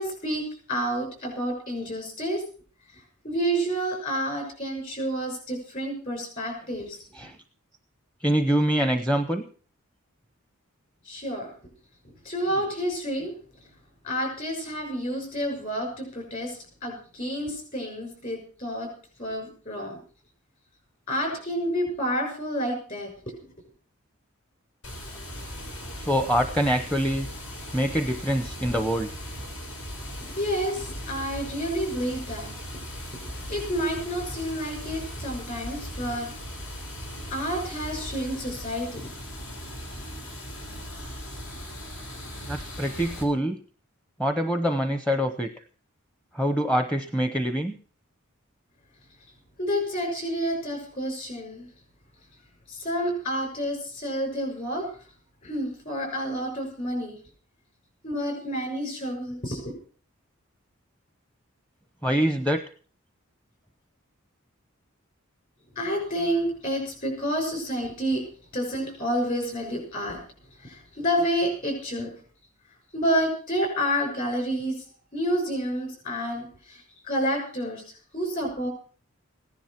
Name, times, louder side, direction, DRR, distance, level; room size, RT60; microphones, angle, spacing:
voice 1, 0.0-2.4 3.2-7.0 11.0-11.5 12.2-13.3 14.0-18.9 19.2-20.0 21.1-23.3 30.3-32.5 33.2-36.3 37.3-39.1 49.6-51.7 52.7-54.9 55.4-57.2 58.0-59.7 65.7-68.2 68.5-70.2 70.6-72.1 72.9-74.9 75.1-78.7, equal, 40° left, 2 dB, 6.5 m, -29 dB
voice 2, 8.2-9.4 26.1-27.3 27.7-29.1 42.5-43.6 44.2-45.5 46.3-47.7 62.0-62.6, equal, 5° left, 7 dB, 0.8 m, -25 dB
Water, 24.8-43.2, equal, 70° left, 4.0 m, -38 dB
16.0 x 10.5 x 5.8 m, 0.41 s
head